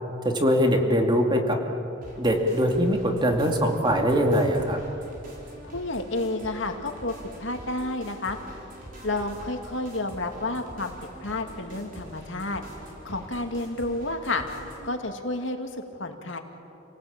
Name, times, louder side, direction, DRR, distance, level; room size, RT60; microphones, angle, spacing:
voice 1, 0.2-1.6 2.2-4.8, equal, 25° right, 3 dB, 2.5 m, -22 dB
sound 1, 2.0-14.9, right 1 dB, 45° right, 5.3 m, -44 dB
voice 2, 5.6-8.4 9.0-10.9 11.2-12.6 13.0-14.4 14.8-16.4, left 2 dB, 70° left, 4 dB, 2.3 m, -30 dB
29.5 x 18.5 x 8.8 m, 2.8 s
head